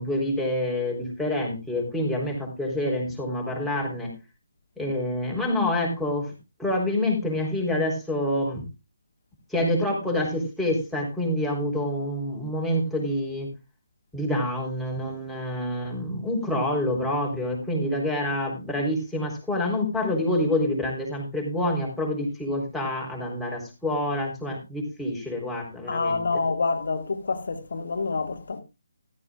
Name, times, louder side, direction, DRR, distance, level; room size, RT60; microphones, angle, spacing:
voice 1, 0.0-4.1 4.8-6.3 6.6-8.6 9.5-13.5 14.1-26.4, left 1 dB, ahead, 3.8 m, -27 dB
voice 2, 25.9-28.6, left 4 dB, 65° left, 1.9 m, -27 dB
14.5 x 13.0 x 2.4 m
figure-of-eight pair, 155°, 0 cm